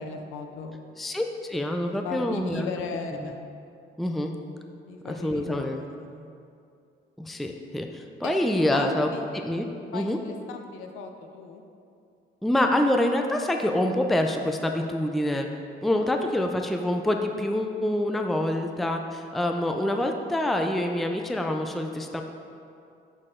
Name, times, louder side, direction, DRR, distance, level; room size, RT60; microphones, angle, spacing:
voice 1, 0.0-0.9 1.8-3.4 4.9-6.3 8.2-8.4 8.7-9.3 9.9-11.6 15.9-16.2, left 4 dB, 90° left, 5 dB, 0.6 m, -37 dB
voice 2, 1.0-2.7 3.2-3.4 4.0-4.3 5.0-5.8 7.2-9.1 9.4-10.2 12.4-15.5 15.8-22.2, left 1 dB, ahead, 4 dB, 0.4 m, -26 dB
6.5 x 6.4 x 3.7 m, 2.5 s
cardioid pair, 90°, 20 cm